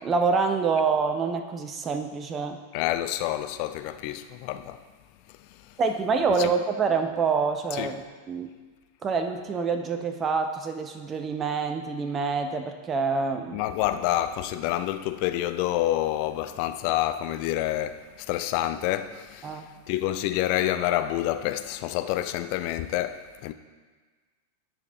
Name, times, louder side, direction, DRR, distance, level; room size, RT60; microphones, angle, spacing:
voice 1, 0.0-2.6 5.8-8.0 8.3-8.5 9.0-13.6 19.4-19.7, right 5 dB, 25° right, 0.5 m, -26 dB
voice 2, 2.7-4.8 5.3-5.8 6.4-6.5 7.7-7.9 13.5-23.5, left 13 dB, 45° left, 0.3 m, -28 dB
10.5 x 4.9 x 2.7 m
figure-of-eight pair, 90°, 0 cm